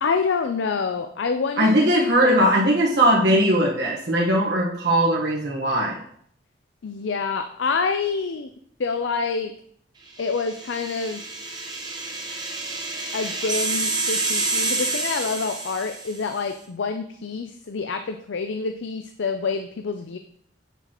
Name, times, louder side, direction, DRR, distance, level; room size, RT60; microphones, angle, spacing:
voice 1, 0.0-1.9 2.2-2.4 6.8-8.5 8.8-9.5 10.2-11.2 13.1-20.2, left 4 dB, 85° left, 7 dB, 0.5 m, -27 dB
voice 2, 1.6-6.0, right 1 dB, 65° right, -4 dB, 1.3 m, -19 dB
sound 1, 10.4-16.3, right 3 dB, 25° right, 1.1 m, -28 dB
8.1 x 7.0 x 3.0 m, 0.64 s
head